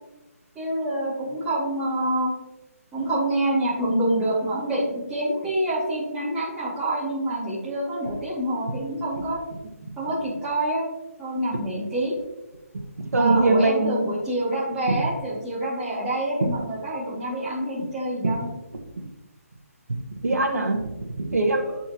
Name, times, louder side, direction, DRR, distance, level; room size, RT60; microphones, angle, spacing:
voice 1, 0.5-2.3 2.9-9.4 10.0-10.9 11.2-12.1 13.2-18.5, right 1 dB, 5° right, -9 dB, 2.2 m, -26 dB
voice 2, 13.1-14.0 14.9-15.0 18.2-18.3 20.2-20.9 21.3-21.8, right 2 dB, 80° right, 3 dB, 1.4 m, -21 dB
12.0 x 4.4 x 3.0 m, 0.99 s
hypercardioid pair, 170°, 8 cm